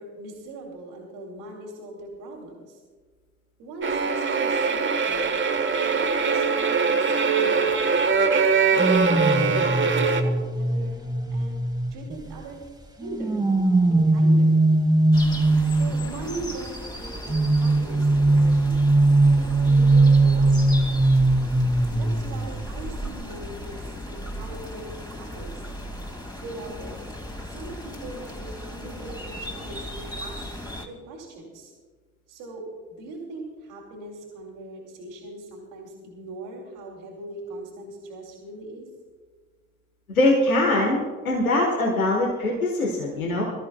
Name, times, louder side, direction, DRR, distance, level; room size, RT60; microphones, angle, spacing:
voice 1, 0.0-2.8 3.6-5.3 5.8-7.7 8.6-11.6 11.9-12.6 13.0-13.4 13.8-14.5 15.7-18.8 19.4-21.2 21.9-25.6 26.4-27.0 27.4-31.7 32.3-38.9, right 2 dB, 65° right, -1 dB, 2.8 m, -40 dB
sound 1, 3.8-10.2, right 5 dB, 30° right, 1.3 m, -22 dB
sound 2, 8.8-12.4 13.0-16.3 17.3-22.5 22.8-23.1, right 2 dB, 10° right, 1.5 m, -20 dB
sound 3, 15.1-30.9, equal, 10° left, 2.2 m, -36 dB
voice 2, 40.1-41.0 41.2-43.4, left 1 dB, 85° left, -1 dB, 1.3 m, -22 dB
24.5 x 13.5 x 2.3 m, 1.5 s
figure-of-eight pair, 50°, 41 cm